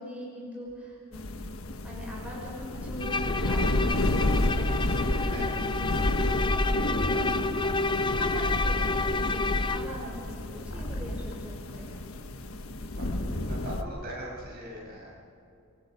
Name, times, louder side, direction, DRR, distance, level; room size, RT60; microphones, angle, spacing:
voice 1, 0.0-1.5 1.8-11.8, equal, 5° right, -5 dB, 6.3 m, -41 dB
sound 1, 0.7-0.8 1.3-2.8 3.5-3.7 4.0-4.5 4.8-7.7 8.8-9.3 9.6-11.9 12.2-12.3 12.6-13.8 14.4-14.5, equal, 65° left, 2.9 m, -37 dB
sound 2, 1.1-13.8, left 1 dB, 80° left, 1.3 m, -30 dB
Bowed string instrument, 3.0-10.0, left 3 dB, 20° left, 0.6 m, -30 dB
voice 2, 5.2-5.6 8.8-8.9 11.7-12.0 12.9-15.1, equal, 45° right, -3 dB, 7.7 m, -42 dB
27.5 x 25.5 x 5.3 m, 2.6 s
head